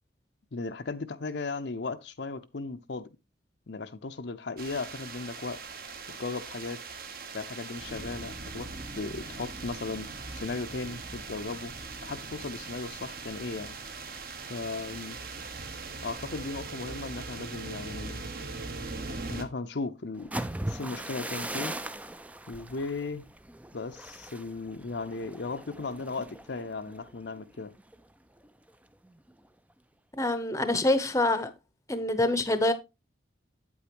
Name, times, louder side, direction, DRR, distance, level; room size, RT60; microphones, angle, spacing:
voice 1, 0.5-3.1 3.7-5.6 6.1-6.8 7.3-10.1 10.3-11.7 12.0-13.8 14.5-15.2 16.0-18.3 19.3-20.3 20.7-21.8 22.5-23.2 23.7-27.8, left 3 dB, 65° left, 0.7 m, -36 dB
sound 1, 4.6-19.4, right 3 dB, 50° right, 1.2 m, -40 dB
sound 2, 20.1-28.0 28.4-28.7 29.0-29.5, right 1 dB, 10° right, 0.4 m, -39 dB
voice 2, 30.2-31.5 31.9-32.7, left 2 dB, 15° left, 0.8 m, -25 dB
8.6 x 8.4 x 2.9 m
head